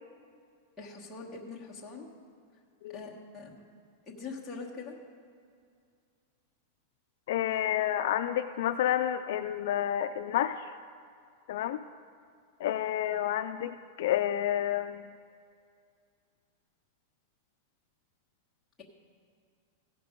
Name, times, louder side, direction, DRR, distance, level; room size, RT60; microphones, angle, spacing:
voice 1, 0.8-2.1 2.9-3.6 4.1-4.9, left 4 dB, 10° left, -5 dB, 1.2 m, -43 dB
voice 2, 7.3-10.8 11.5-11.8 12.6-15.1, left 11 dB, 55° left, 8 dB, 0.3 m, -30 dB
15.5 x 5.9 x 5.1 m, 2.3 s
supercardioid pair, 175°, 0 cm